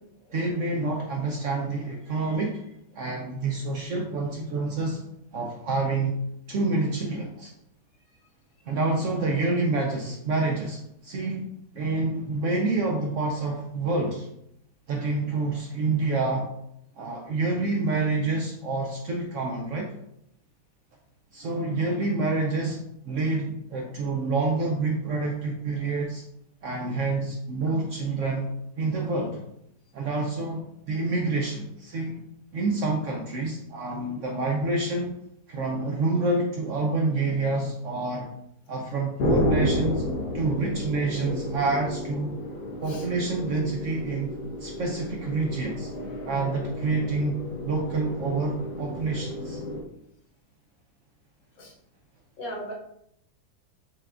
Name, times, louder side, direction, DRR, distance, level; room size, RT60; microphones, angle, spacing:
voice 1, 0.3-2.6 2.9-5.0 5.3-6.1 6.5-7.5 8.7-11.5 11.7-14.3 14.9-16.5 17.0-19.9 21.3-26.2 26.6-29.4 29.9-32.2 32.5-35.1 35.5-38.3 38.7-40.0 40.3-42.4 42.8-44.3 44.6-45.9 46.2-49.6, right 3 dB, 65° right, 1 dB, 0.7 m, -27 dB
sound 1, 39.2-49.8, left 1 dB, 80° left, 1.3 m, -32 dB
voice 2, 52.4-52.7, equal, 60° left, -1 dB, 1.3 m, -37 dB
5.5 x 3.5 x 2.4 m, 0.77 s
omnidirectional pair, 1.7 m